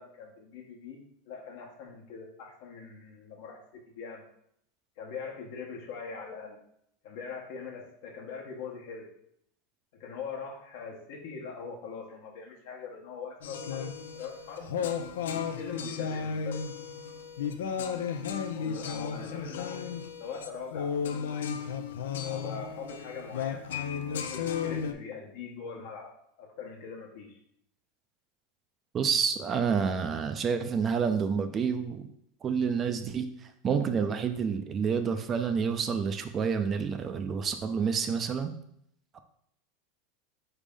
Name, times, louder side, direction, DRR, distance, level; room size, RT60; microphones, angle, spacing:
voice 1, 0.0-4.2 5.0-6.6 7.0-9.1 9.9-14.9 15.3-16.6 18.5-21.3 22.2-23.8 24.2-26.1 26.4-27.4, left 5 dB, 70° left, 1 dB, 1.1 m, -42 dB
sound 1, 13.4-24.9, left 7 dB, 85° left, 0.4 m, -34 dB
voice 2, 28.9-32.1 32.4-38.5, right 6 dB, 30° right, 8 dB, 0.4 m, -29 dB
4.0 x 3.4 x 3.6 m, 0.72 s
supercardioid pair, 115°, 0 cm